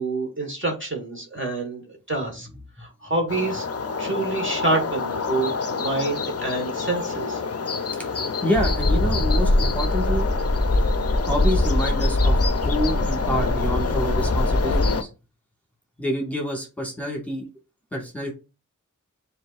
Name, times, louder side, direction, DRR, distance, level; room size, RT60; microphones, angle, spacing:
voice 1, 0.0-1.8 2.1-2.5 2.8-3.7 4.0-7.4, right 2 dB, 40° right, 1 dB, 1.4 m, -27 dB
sound 1, 3.3-15.0, left 5 dB, 50° left, 0.5 m, -28 dB
voice 2, 8.4-10.3 11.2-15.1 16.0-17.4 17.9-18.3, equal, 5° left, -1 dB, 1.5 m, -27 dB
sound 2, 8.5-15.0, left 1 dB, 25° left, 0.8 m, -22 dB
7.1 x 2.6 x 2.4 m, 0.30 s
wide cardioid pair, 45°, 31 cm